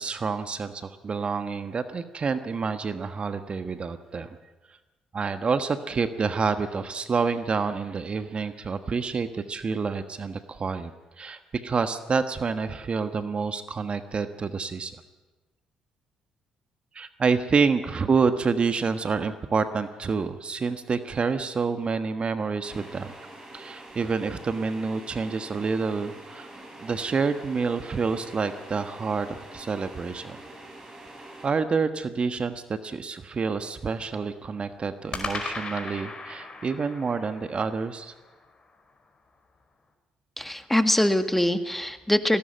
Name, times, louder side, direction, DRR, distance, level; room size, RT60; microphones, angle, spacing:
voice 1, 0.0-4.4 5.1-10.9 11.2-14.9 16.9-23.1 23.5-26.5 26.8-30.4 31.4-38.1, right 5 dB, 40° right, 10 dB, 1.4 m, -28 dB
sound 1, 22.6-31.5, right 1 dB, 25° right, 7.7 m, -45 dB
sound 2, 27.4-29.3 35.1-39.4, left 3 dB, 35° left, 4.8 m, -39 dB
voice 2, 40.4-42.4, left 1 dB, 5° left, 9 dB, 1.8 m, -23 dB
19.0 x 18.0 x 9.0 m, 1.2 s
hypercardioid pair, 50°, 3 cm